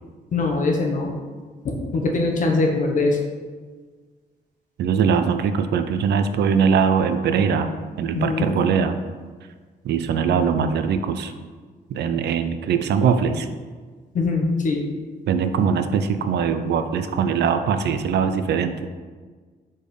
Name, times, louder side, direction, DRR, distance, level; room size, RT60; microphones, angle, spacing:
voice 1, 0.3-1.1 1.6-3.2 8.1-8.5 14.1-14.8, left 3 dB, 45° left, 1 dB, 1.0 m, -22 dB
voice 2, 4.8-7.7 8.0-9.0 9.8-11.3 11.9-13.5 15.3-18.9, right 6 dB, 75° right, 9 dB, 0.5 m, -21 dB
4.9 x 4.4 x 5.1 m, 1.5 s
wide cardioid pair, 155°, 18 cm